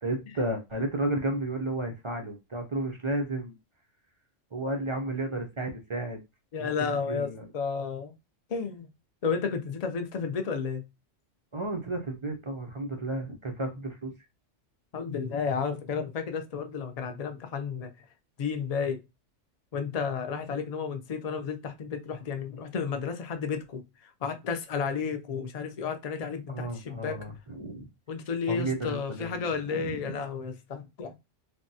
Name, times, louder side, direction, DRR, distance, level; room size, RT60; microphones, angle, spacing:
voice 1, 0.0-3.5 4.5-6.2 6.6-7.5 11.5-14.1 26.5-27.9 28.5-30.1, right 1 dB, 55° right, 0.3 m, -33 dB
voice 2, 6.5-8.1 8.5-8.9 9.2-10.8 14.9-17.9 18.4-19.0 19.7-27.2 28.1-31.1, left 6 dB, 50° left, 0.4 m, -32 dB
3.4 x 2.2 x 2.6 m
omnidirectional pair, 1.3 m